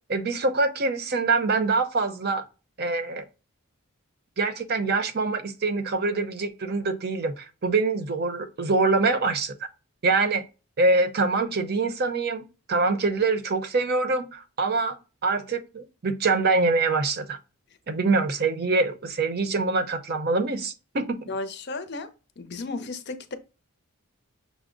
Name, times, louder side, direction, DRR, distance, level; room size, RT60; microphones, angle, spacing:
voice 1, 0.1-2.4 2.8-3.2 4.4-9.5 10.0-10.4 10.8-15.0 15.2-17.4 17.9-21.3, right 3 dB, 45° right, 0.6 m, -24 dB
voice 2, 21.3-22.1 22.4-23.3, left 3 dB, 50° left, 0.6 m, -34 dB
6.0 x 2.0 x 3.7 m
head